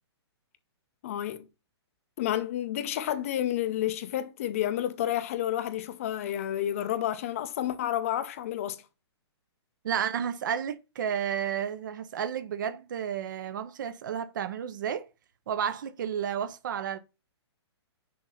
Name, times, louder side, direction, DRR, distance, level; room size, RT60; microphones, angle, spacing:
voice 1, 1.0-1.5 2.2-8.8, left 12 dB, 30° left, 0.5 m, -30 dB
voice 2, 9.8-15.1 15.5-17.0, right 8 dB, 45° right, 0.5 m, -32 dB
6.3 x 2.7 x 5.6 m
hypercardioid pair, 170°, 15 cm